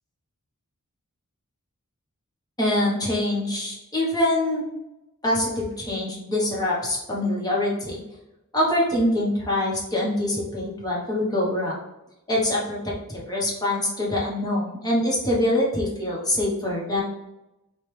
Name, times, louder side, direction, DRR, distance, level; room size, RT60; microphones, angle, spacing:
voice 1, 2.6-4.6 5.2-8.0 8.5-11.8 12.3-12.8 13.1-17.0, left 1 dB, 20° left, -5 dB, 1.2 m, -24 dB
5.1 x 2.4 x 3.3 m, 0.93 s
head